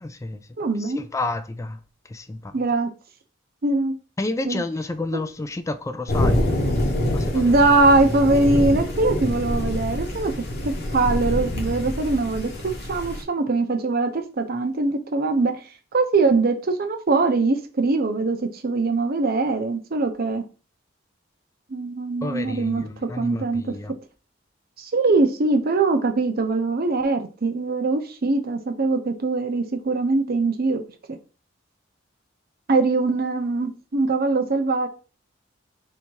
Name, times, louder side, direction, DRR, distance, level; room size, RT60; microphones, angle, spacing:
voice 1, 0.0-0.5 0.8-1.8 2.1-2.6 4.2-6.4 7.1-7.5 22.2-24.0, left 2 dB, 15° left, 0.3 m, -30 dB
voice 2, 0.6-1.0 2.5-2.9 3.6-4.0 4.4-4.6 5.1-5.2 7.3-15.6 15.9-20.4 21.7-23.7 24.8-30.8 31.1-31.2 32.7-34.9, right 3 dB, 50° right, 0.6 m, -22 dB
sound 1, 6.1-13.2, left 1 dB, 55° left, 1.0 m, -25 dB
3.4 x 2.8 x 4.6 m
head